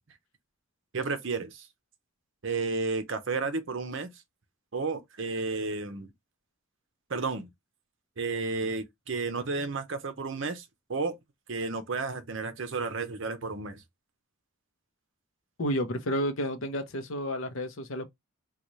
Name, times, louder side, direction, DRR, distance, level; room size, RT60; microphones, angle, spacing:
voice 1, 0.9-1.7 2.4-4.1 4.7-6.1 7.1-7.5 8.2-11.2 11.5-13.8, right 4 dB, 55° right, 0.7 m, -32 dB
voice 2, 15.6-18.0, equal, 65° left, 0.7 m, -31 dB
3.9 x 2.3 x 3.0 m
head